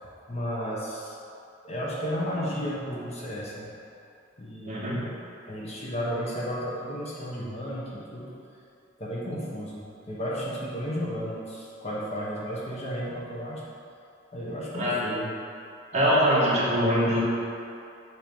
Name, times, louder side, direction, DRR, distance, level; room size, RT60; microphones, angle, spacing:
voice 1, 0.3-1.1 1.6-3.7 4.4-4.9 5.5-8.3 9.0-13.6 14.3-15.3, equal, 35° left, -6 dB, 1.0 m, -33 dB
voice 2, 4.7-5.2 14.7-15.0 15.9-17.2, equal, 35° right, -7 dB, 1.5 m, -23 dB
7.6 x 3.0 x 5.3 m, 2.6 s
head